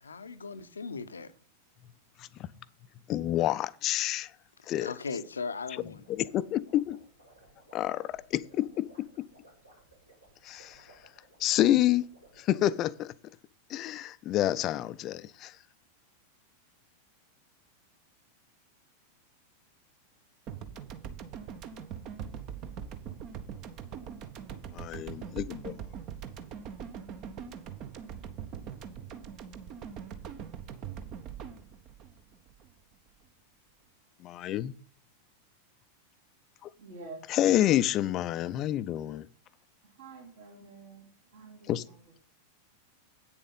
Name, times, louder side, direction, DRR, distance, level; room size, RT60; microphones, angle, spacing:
voice 1, 0.0-1.3 4.8-6.0, left 4 dB, 75° left, 0.7 m, -38 dB
voice 2, 3.1-4.3 4.7-4.9 6.1-7.0 7.7-9.3 10.4-10.8 11.4-12.1 12.4-13.1 13.7-15.5 24.7-25.9 34.2-34.7 36.6-36.7 37.3-39.3 41.7-41.8, left 13 dB, 35° left, 0.5 m, -28 dB
sound 1, 5.8-12.7, right 1 dB, 90° right, 3.7 m, -60 dB
sound 2, 20.5-32.9, right 8 dB, 40° right, 0.9 m, -42 dB
voice 3, 36.8-37.3 39.8-42.2, right 3 dB, 65° right, 3.5 m, -48 dB
8.8 x 7.1 x 5.4 m
figure-of-eight pair, 90°, 0 cm